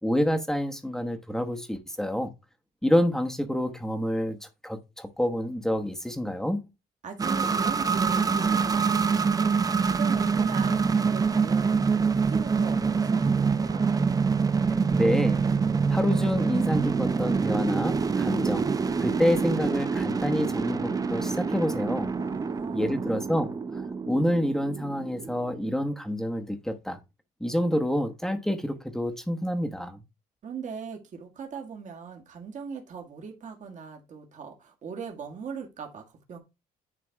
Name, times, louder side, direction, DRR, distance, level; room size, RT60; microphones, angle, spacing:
voice 1, 0.0-2.3 2.8-6.6 14.9-15.4 15.9-18.7 19.0-22.1 22.7-27.0 27.4-30.0, equal, 5° left, 1.1 m, -28 dB
voice 2, 7.0-9.5 9.8-13.9 22.1-23.2 30.4-36.4, right 6 dB, 45° right, 1.9 m, -40 dB
sound 1, 7.2-25.7, right 5 dB, 20° right, 0.6 m, -26 dB
9.7 x 3.4 x 4.6 m
cardioid pair, 110°, 17 cm